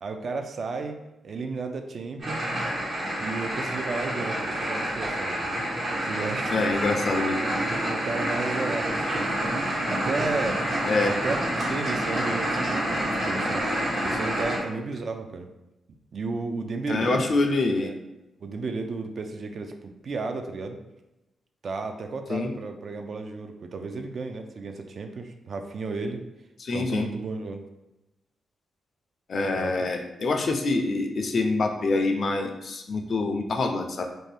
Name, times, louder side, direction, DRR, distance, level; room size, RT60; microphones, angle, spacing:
voice 1, 0.0-1.0 1.2-2.5 3.2-5.5 6.0-6.9 7.4-10.7 11.1-15.5 16.1-17.2 17.8-18.0 18.4-20.8 21.6-26.2 26.7-27.6 29.5-29.9, right 4 dB, 55° right, 5 dB, 0.3 m, -33 dB
sound 1, 2.2-14.6, right 1 dB, 70° right, 1.2 m, -28 dB
voice 2, 6.5-7.4 10.8-11.1 16.9-17.9 22.3-22.5 26.6-27.1 29.3-34.0, left 3 dB, 55° left, 4 dB, 0.4 m, -25 dB
2.6 x 2.1 x 3.2 m, 0.95 s
cardioid pair, 85°, 0 cm